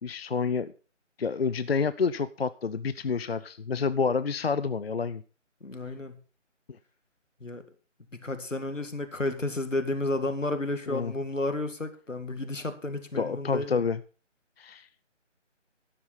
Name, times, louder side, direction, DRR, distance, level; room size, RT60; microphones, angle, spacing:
voice 1, 0.0-0.7 1.2-5.2 10.9-11.1 13.2-14.0 14.6-14.9, left 5 dB, 55° left, 15 dB, 0.5 m, -28 dB
voice 2, 5.6-6.2 7.4-7.6 8.1-13.8, left 2 dB, 85° left, 9 dB, 2.0 m, -32 dB
12.5 x 10.0 x 4.1 m, 0.36 s
figure-of-eight pair, 155°, 37 cm